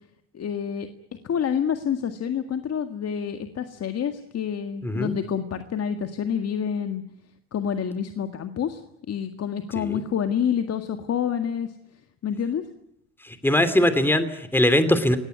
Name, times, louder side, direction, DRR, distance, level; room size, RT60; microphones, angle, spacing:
voice 1, 0.3-0.9 1.2-7.0 7.5-8.8 9.1-11.7 12.2-12.6, left 8 dB, 45° left, 8 dB, 1.9 m, -28 dB
voice 2, 4.8-5.1 9.7-10.0 13.2-15.2, left 1 dB, 5° left, 11 dB, 2.8 m, -21 dB
25.5 x 18.5 x 9.5 m, 0.76 s
hypercardioid pair, 75°, 35 cm